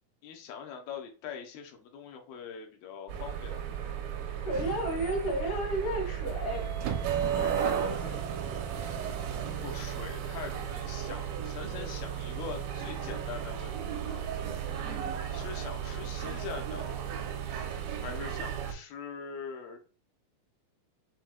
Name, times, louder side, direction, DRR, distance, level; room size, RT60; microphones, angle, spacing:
voice 1, 0.2-3.6 9.6-14.2 15.3-16.9 18.0-19.8, left 6 dB, 80° left, 4 dB, 2.5 m, -42 dB
sound 1, 3.1-18.7, right 8 dB, 85° right, 2.4 m, -34 dB
voice 2, 4.4-6.7 7.2-8.2 14.8-15.1, right 1 dB, 65° left, -4 dB, 2.8 m, -33 dB
7.1 x 3.1 x 2.2 m, 0.37 s
omnidirectional pair, 4.2 m